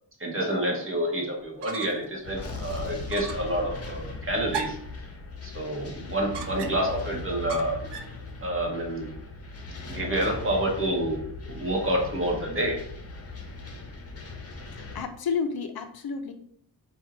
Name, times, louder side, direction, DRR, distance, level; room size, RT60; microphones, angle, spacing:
voice 1, 0.2-4.8 5.4-7.9 8.4-9.1 9.9-11.2 11.5-12.7, right 1 dB, 30° right, 0 dB, 1.2 m, -28 dB
sound 1, 1.4-2.1 2.5-2.6 3.1-3.5 4.5-5.0 6.3-7.0 7.5-8.2, right 6 dB, 70° right, 0.5 m, -37 dB
sound 2, 2.2-15.0, left 3 dB, 35° left, 0.8 m, -39 dB
voice 2, 14.7-16.3, left 5 dB, 60° left, 7 dB, 0.6 m, -31 dB
4.3 x 2.4 x 4.4 m, 0.66 s
wide cardioid pair, 115°, 42 cm